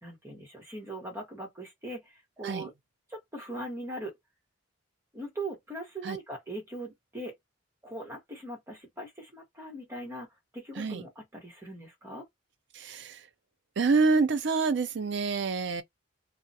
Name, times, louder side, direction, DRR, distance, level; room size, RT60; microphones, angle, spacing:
voice 1, 0.0-2.7 3.1-4.1 5.1-7.3 7.8-10.3 10.5-12.2, right 1 dB, 15° right, 1.0 m, -40 dB
voice 2, 12.7-13.2 13.8-15.8, right 4 dB, 60° right, 0.5 m, -27 dB
2.3 x 2.0 x 2.7 m
head